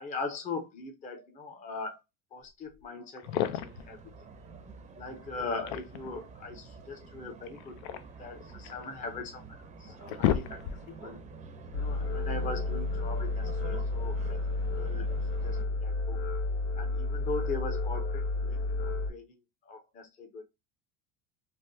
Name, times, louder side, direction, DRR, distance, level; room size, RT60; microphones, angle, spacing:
voice 1, 0.0-2.0 2.3-4.0 5.0-10.6 11.0-11.2 11.8-14.5 14.7-15.1 15.4-16.2 16.7-20.4, left 3 dB, 25° left, 0.6 m, -40 dB
sound 1, 2.7-2.8 3.2-3.9 5.3-6.2 7.5-8.8 9.4-9.5 9.9-11.0, left 11 dB, 75° left, 0.5 m, -32 dB
sound 2, 3.2-15.7, right 4 dB, 25° right, 0.5 m, -48 dB
sound 3, 11.7-19.1, left 2 dB, 60° left, 1.4 m, -31 dB
3.4 x 2.1 x 2.5 m
cardioid pair, 135°, 30 cm